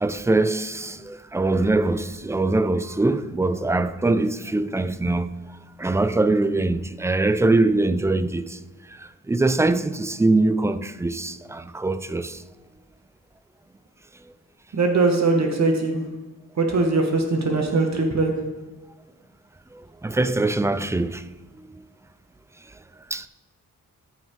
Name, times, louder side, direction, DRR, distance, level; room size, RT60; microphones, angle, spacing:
voice 1, 0.0-5.3 5.8-8.6 9.3-12.4 20.0-21.2 23.1-23.3, right 2 dB, 10° right, 0.3 m, -22 dB
voice 2, 14.7-16.0 16.6-18.3, right 3 dB, 50° right, 1.2 m, -21 dB
13.5 x 5.4 x 3.6 m
wide cardioid pair, 105°, 34 cm